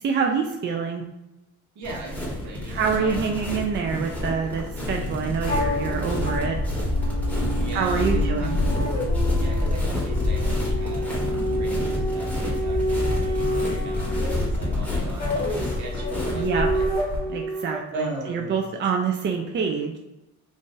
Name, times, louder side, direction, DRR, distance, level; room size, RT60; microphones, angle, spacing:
voice 1, 0.0-1.0 2.7-6.6 7.7-8.6 16.3-16.7 17.3-20.0, right 6 dB, 40° right, 2 dB, 0.4 m, -26 dB
voice 2, 1.7-3.5 7.6-8.5 9.4-11.2 11.6-16.8 17.1-17.3 17.9-18.7, right 2 dB, 70° right, -1 dB, 1.0 m, -38 dB
sound 1, 1.8-17.2, left 1 dB, 5° left, 1.2 m, -27 dB
sound 2, 4.5-15.0, left 3 dB, 55° left, 0.6 m, -44 dB
sound 3, 5.5-17.8, equal, 30° left, 1.1 m, -30 dB
2.5 x 2.5 x 3.7 m, 0.96 s
cardioid pair, 90°, 30 cm